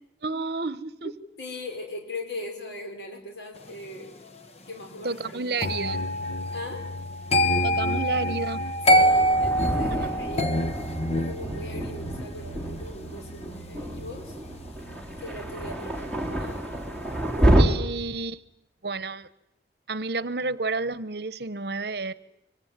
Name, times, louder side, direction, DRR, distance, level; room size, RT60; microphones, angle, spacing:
voice 1, 0.2-1.1 5.0-6.0 7.6-8.6 9.9-10.1 17.6-18.4 18.8-19.3 19.9-22.1, right 3 dB, 65° right, 16 dB, 1.0 m, -30 dB
voice 2, 1.4-4.1 4.7-5.5 6.5-6.8 8.9-10.5 11.1-14.4 15.2-16.6, left 1 dB, 85° left, 3 dB, 4.8 m, -39 dB
sound 1, 5.6-16.6 16.9-17.2, equal, 35° left, 1.3 m, -27 dB
Thunder, 9.0-17.6, right 1 dB, 5° left, 4.6 m, -28 dB
25.5 x 24.0 x 9.5 m, 0.81 s
head